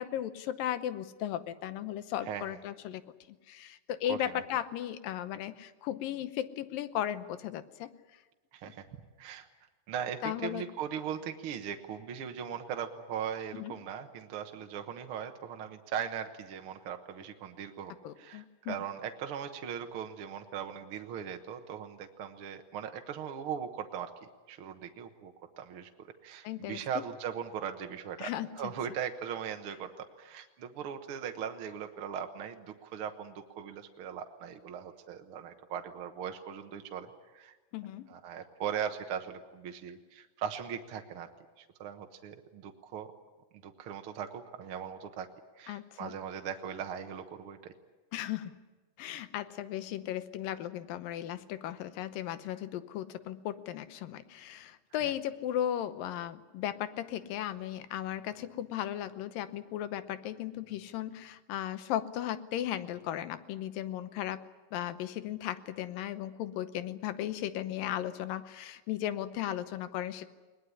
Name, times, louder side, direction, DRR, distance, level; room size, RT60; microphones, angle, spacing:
voice 1, 0.0-3.0 3.5-7.9 10.2-10.6 13.6-13.7 18.0-18.8 26.4-27.0 28.2-28.7 37.7-38.1 45.7-46.1 48.1-48.5 49.0-64.4 64.7-70.3, left 11 dB, 85° left, 12 dB, 2.7 m, -36 dB
voice 2, 4.1-4.4 8.5-8.9 9.2-9.5 9.9-24.1 24.5-25.9 26.2-28.3 28.6-29.9 30.2-37.1 37.3-37.6 38.1-41.3 41.6-43.1 43.6-45.3 45.6-47.7 55.0-55.1, right 8 dB, 60° right, 5 dB, 1.5 m, -39 dB
21.0 x 20.0 x 9.9 m, 1.2 s
omnidirectional pair, 3.9 m